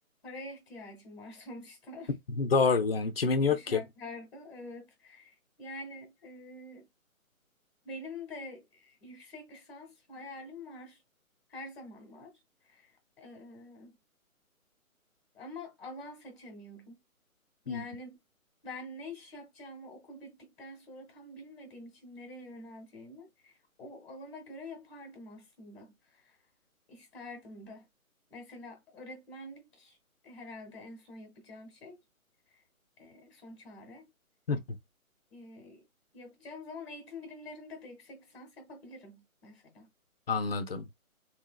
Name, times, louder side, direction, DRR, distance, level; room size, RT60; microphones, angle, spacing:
voice 1, 0.2-2.1 3.4-6.9 7.8-11.0 11.5-12.4 12.6-13.9 15.3-17.0 17.6-18.2 18.6-26.4 26.9-27.8 28.3-30.0 30.2-32.0 32.5-32.6 33.0-34.1 35.3-35.8 36.1-39.9, left 2 dB, 10° left, 1.0 m, -46 dB
voice 2, 2.4-3.8 17.7-17.8 34.5-34.6 40.3-40.9, left 4 dB, 45° left, 0.5 m, -27 dB
3.3 x 2.8 x 2.3 m
figure-of-eight pair, 150°, 43 cm